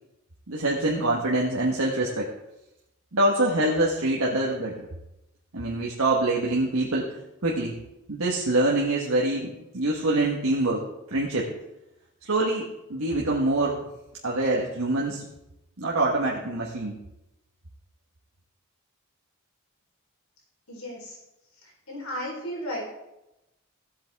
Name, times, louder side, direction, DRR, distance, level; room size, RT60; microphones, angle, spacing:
voice 1, 0.5-2.3 3.1-4.9 5.5-7.1 7.4-7.7 8.1-10.8 11.1-11.5 12.2-13.8 14.2-15.2 15.8-16.9, right 2 dB, 75° right, -3 dB, 1.4 m, -25 dB
voice 2, 20.7-21.2 21.6-22.8, equal, 80° left, -2 dB, 4.2 m, -34 dB
16.0 x 7.8 x 3.6 m, 0.92 s
head